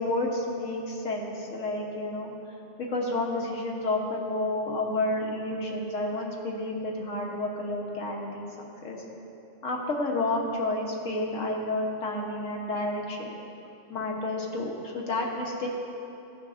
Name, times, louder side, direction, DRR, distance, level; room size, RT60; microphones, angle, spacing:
voice 1, 0.0-2.3 2.8-8.5 8.8-9.0 9.6-13.3 13.9-15.7, left 2 dB, 85° left, -1 dB, 1.4 m, -30 dB
14.5 x 5.9 x 2.5 m, 2.9 s
omnidirectional pair, 1.3 m